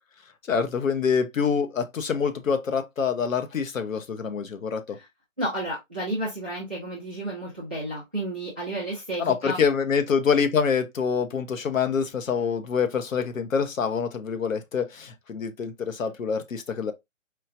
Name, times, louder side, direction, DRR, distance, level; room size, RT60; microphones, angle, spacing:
voice 1, 0.5-5.0 9.2-16.9, left 6 dB, 75° left, 0.8 m, -26 dB
voice 2, 5.4-9.6, right 1 dB, 10° right, 0.4 m, -31 dB
4.5 x 2.3 x 2.4 m
figure-of-eight pair, 145°, 40 cm